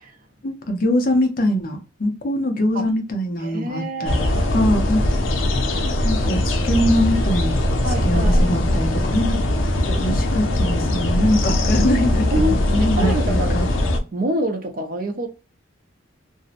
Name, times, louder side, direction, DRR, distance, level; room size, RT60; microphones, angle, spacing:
voice 1, 0.4-5.1 6.0-7.6 8.0-9.4 9.9-13.7, left 1 dB, 50° left, 0.6 m, -22 dB
voice 2, 3.4-4.7 7.8-8.5 12.3-13.7 14.1-15.3, right 1 dB, 45° right, 0.6 m, -26 dB
sound 1, 4.0-14.0, left 1 dB, 90° left, 0.5 m, -20 dB
2.6 x 2.0 x 2.4 m
head